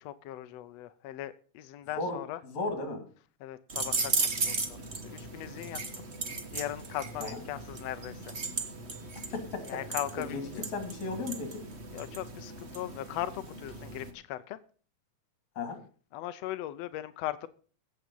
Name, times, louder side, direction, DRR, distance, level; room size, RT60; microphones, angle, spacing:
voice 1, 0.0-2.4 3.4-5.8 6.5-8.3 9.7-10.6 11.9-14.6 16.1-17.5, left 13 dB, 75° left, 1.5 m, -39 dB
voice 2, 1.9-3.0 7.2-7.4 9.3-9.8 10.2-11.6 15.6-15.8, left 3 dB, 60° left, 4.0 m, -35 dB
sound 1, 3.7-14.1, right 4 dB, 70° right, 0.6 m, -36 dB
16.0 x 7.8 x 5.4 m
omnidirectional pair, 3.8 m